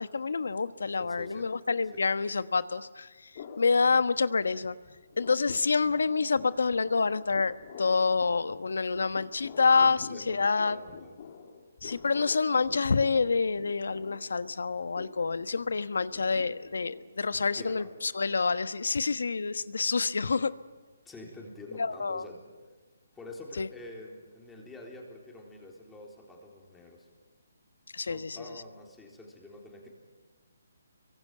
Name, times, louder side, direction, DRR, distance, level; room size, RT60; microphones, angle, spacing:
voice 1, 0.0-3.3 3.6-4.7 5.2-10.8 11.8-20.5 21.8-22.2 23.6-23.7 27.9-28.4, left 4 dB, 80° left, 13 dB, 1.2 m, -27 dB
voice 2, 1.0-1.5 1.9-2.0 9.8-11.2 17.5-17.9 21.1-22.5 23.1-27.1 28.0-29.9, left 2 dB, 5° left, -1 dB, 3.8 m, -47 dB
sound 1, 3.3-4.6 4.8-18.0, left 6 dB, 40° left, 3.0 m, -49 dB
26.5 x 23.5 x 9.3 m, 1.3 s
hypercardioid pair, 160°, 0 cm